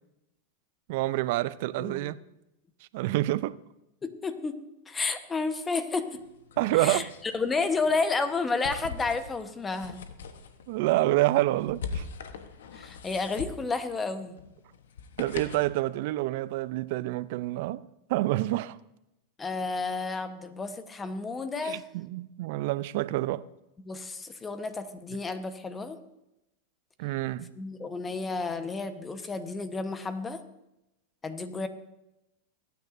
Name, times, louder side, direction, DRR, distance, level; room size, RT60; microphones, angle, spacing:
voice 1, 0.9-2.2 2.9-3.6 6.6-7.1 10.7-12.1 15.2-17.8 18.1-18.8 21.6-23.4 27.0-27.5, right 17 dB, 65° right, 0.4 m, -27 dB
voice 2, 1.8-2.1 4.0-4.5 4.9-6.2 6.7-7.0 7.3-10.0 12.8-14.4 19.4-21.8 23.8-26.0 27.6-30.4 31.2-31.7, left 4 dB, 20° left, 1.0 m, -31 dB
sound 1, 6.1-15.8, left 5 dB, 85° left, 1.0 m, -42 dB
23.5 x 9.3 x 2.6 m
hypercardioid pair, 115°, 0 cm